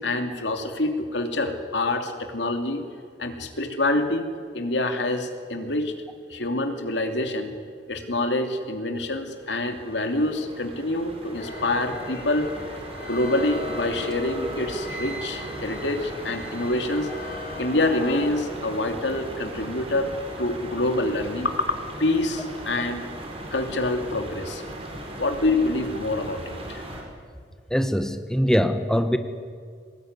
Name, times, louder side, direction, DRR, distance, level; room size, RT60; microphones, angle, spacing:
voice 1, 0.0-2.8 3.2-4.3 4.5-5.9 6.3-7.5 7.9-12.5 13.1-17.1 17.6-23.1 23.5-24.6 25.2-26.8, left 2 dB, 80° left, 6 dB, 2.8 m, -26 dB
sound 1, 9.1-27.0, right 1 dB, 35° right, 5.2 m, -38 dB
sound 2, 11.4-18.3, left 1 dB, 55° left, 5.7 m, -37 dB
voice 2, 27.7-29.2, equal, 5° left, 8 dB, 1.1 m, -22 dB
24.0 x 19.5 x 9.6 m, 2.1 s
head